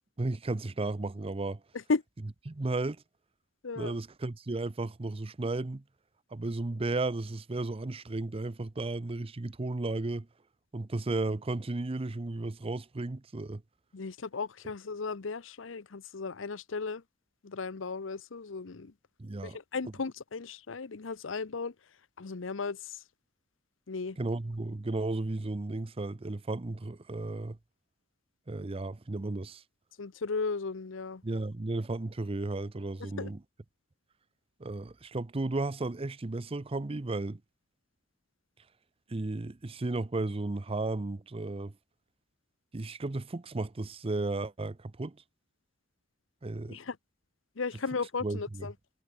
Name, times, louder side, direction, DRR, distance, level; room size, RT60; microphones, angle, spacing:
voice 1, 0.2-1.6 2.5-3.0 3.8-5.8 6.3-10.3 10.7-13.6 19.2-19.6 24.2-27.6 28.5-29.6 31.2-33.4 34.6-37.4 39.1-41.7 42.7-45.2 46.4-46.8 48.2-48.7, right 2 dB, 30° right, 0.6 m, -34 dB
voice 2, 3.6-4.0 13.9-17.0 17.4-18.9 19.4-21.7 22.2-23.0 23.9-24.2 30.0-31.2 33.2-33.3 46.7-47.0 47.6-48.7, left 4 dB, 85° left, 0.8 m, -35 dB
head